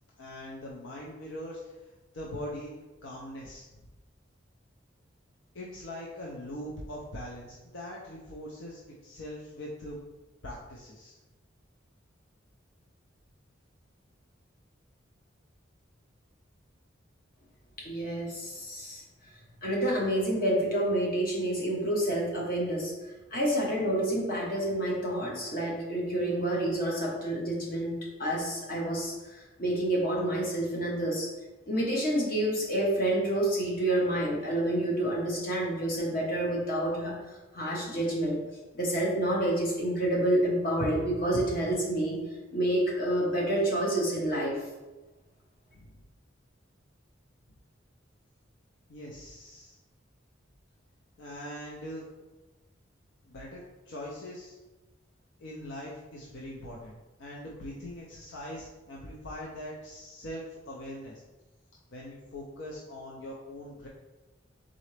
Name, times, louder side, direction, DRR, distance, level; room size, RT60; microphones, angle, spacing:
voice 1, 0.2-2.7 3.0-3.6 5.5-10.0 10.4-11.2 45.7-46.0 48.9-49.8 51.2-52.0 53.3-54.6 55.4-61.2 61.9-63.9, left 1 dB, 70° left, -3 dB, 0.6 m, -42 dB
voice 2, 17.8-19.0 19.6-22.9 23.3-27.9 28.2-31.3 31.7-37.1 37.5-38.4 38.8-42.2 42.5-44.6, right 1 dB, 50° left, -3 dB, 1.2 m, -28 dB
4.0 x 3.7 x 3.3 m, 1.1 s
head